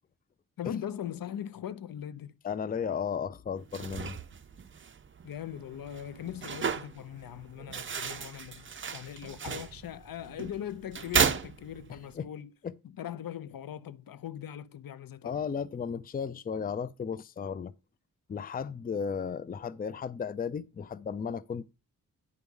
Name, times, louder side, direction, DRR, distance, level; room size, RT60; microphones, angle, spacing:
voice 1, 0.6-2.4 5.2-12.5 13.0-15.4, left 10 dB, 75° left, 0.6 m, -40 dB
voice 2, 2.4-4.2 12.2-12.3 12.6-12.7 15.2-17.7 18.3-21.7, left 6 dB, 25° left, 0.4 m, -34 dB
sound 1, 3.6-12.1, right 6 dB, 35° right, 0.5 m, -35 dB
9.6 x 4.7 x 5.3 m
wide cardioid pair, 125°, 34 cm